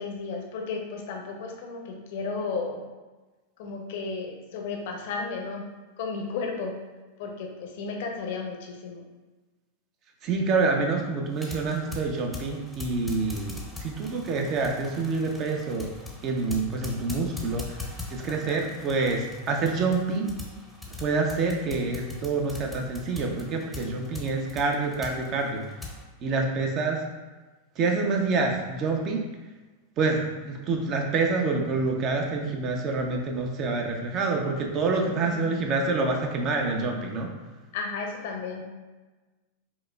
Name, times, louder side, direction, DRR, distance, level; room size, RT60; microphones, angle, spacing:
voice 1, 0.0-2.8 3.6-5.7 6.0-6.7 7.2-9.0 18.3-18.6 35.2-35.4 37.7-38.6, left 4 dB, 65° left, 2 dB, 0.6 m, -33 dB
voice 2, 10.2-15.9 16.2-20.3 21.0-25.7 26.2-27.1 27.8-29.3 30.0-37.3, right 3 dB, 40° right, 2 dB, 0.6 m, -27 dB
sound 1, 11.3-26.0, left 3 dB, ahead, 0.7 m, -41 dB
5.1 x 2.1 x 2.3 m, 1.2 s
hypercardioid pair, 100°, 0 cm